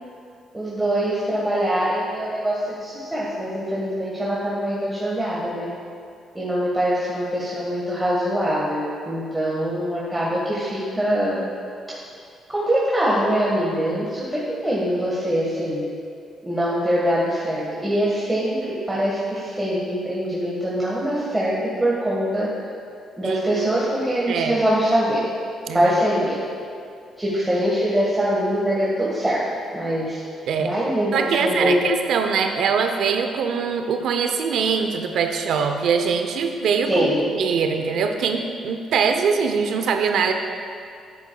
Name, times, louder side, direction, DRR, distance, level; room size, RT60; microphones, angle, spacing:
voice 1, 0.5-5.7 6.3-11.4 11.9-12.0 12.5-15.8 16.5-22.5 23.2-25.2 25.7-26.4 27.2-29.4 29.7-30.2 30.6-31.8 36.9-37.2, equal, 10° right, -7 dB, 1.4 m, -23 dB
voice 2, 23.2-23.7 24.3-24.6 25.7-25.9 30.5-30.7 31.1-40.3, right 6 dB, 75° right, 6 dB, 0.6 m, -23 dB
9.8 x 8.6 x 2.3 m, 2.3 s
cardioid pair, 90°, 0 cm